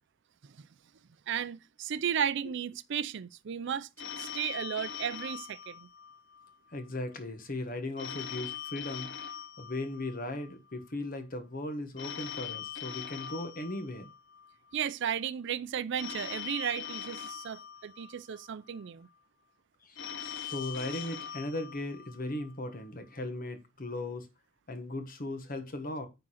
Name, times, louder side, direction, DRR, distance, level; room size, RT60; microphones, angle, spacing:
voice 1, 1.3-3.9 4.2-5.9 14.7-19.1, right 8 dB, 55° right, 0.4 m, -34 dB
Telephone, 4.0-6.5 8.0-10.5 12.0-14.5 16.0-18.4 20.0-22.4, left 9 dB, 55° left, 0.8 m, -42 dB
voice 2, 6.7-9.2 9.6-14.1 19.8-24.3 24.7-26.1, left 2 dB, 40° left, 1.3 m, -37 dB
9.7 x 3.8 x 6.3 m
head